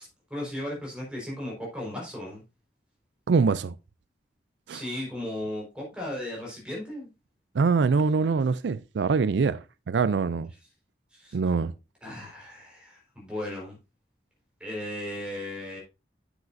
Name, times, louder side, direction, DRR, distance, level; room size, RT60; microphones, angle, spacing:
voice 1, 0.3-2.4 4.7-7.1 11.1-11.4 12.0-13.8 14.6-15.8, left 1 dB, 5° right, 4.4 m, -36 dB
voice 2, 3.3-3.8 4.7-4.8 7.5-9.6 9.9-10.5 11.3-11.7, right 5 dB, 75° right, 0.4 m, -24 dB
9.4 x 7.3 x 2.6 m
head